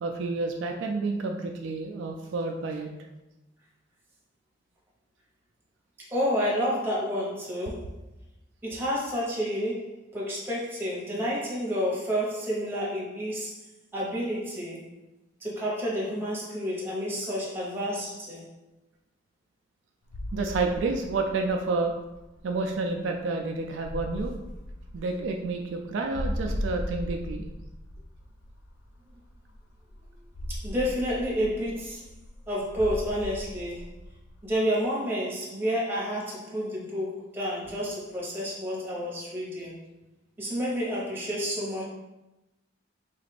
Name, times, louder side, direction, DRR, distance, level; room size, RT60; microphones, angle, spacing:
voice 1, 0.0-2.9 20.3-21.9 22.4-24.3 24.9-27.4, right 3 dB, 70° right, 2 dB, 0.3 m, -29 dB
voice 2, 6.1-7.8 8.6-13.5 13.9-14.8 15.4-18.5 30.5-32.0 32.5-33.8 34.4-39.7 40.4-41.8, equal, 10° right, -6 dB, 1.0 m, -30 dB
sound 1, 20.1-34.6, equal, 75° left, 0.5 m, -38 dB
3.7 x 2.4 x 3.3 m, 1.0 s
head